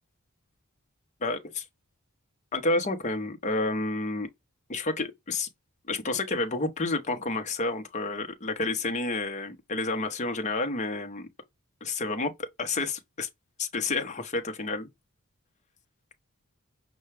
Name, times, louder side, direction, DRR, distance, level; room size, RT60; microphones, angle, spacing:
voice 1, 1.2-1.6 2.5-4.3 4.7-5.5 5.9-11.3 11.8-12.3 12.6-13.3 13.6-14.9, left 2 dB, 35° left, 0.8 m, -30 dB
5.6 x 2.3 x 3.2 m
head